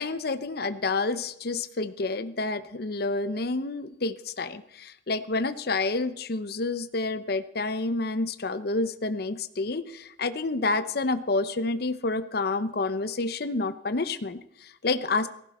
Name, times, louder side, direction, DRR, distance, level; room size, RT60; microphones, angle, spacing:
voice 1, 0.0-15.3, left 3 dB, 60° left, 12 dB, 0.8 m, -29 dB
18.0 x 15.5 x 4.3 m, 0.74 s
head